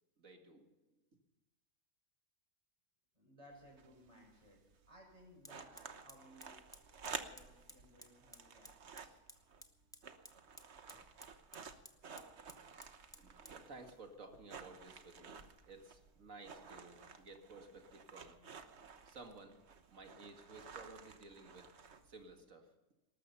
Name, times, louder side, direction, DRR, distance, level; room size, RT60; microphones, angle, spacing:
voice 1, 0.2-0.7 12.5-12.6 13.2-18.4 19.1-19.6 19.9-21.7 22.0-22.7, right 3 dB, 85° right, 4 dB, 2.4 m, -55 dB
voice 2, 3.1-4.6 4.9-6.5 7.3-9.2, equal, 25° right, 0 dB, 6.4 m, -61 dB
sound 1, 3.5-22.4, right 5 dB, 60° right, 1.4 m, -53 dB
Fire, 5.4-19.4, equal, 5° left, 1.0 m, -62 dB
19.0 x 13.0 x 5.6 m, 1.1 s
omnidirectional pair, 1.3 m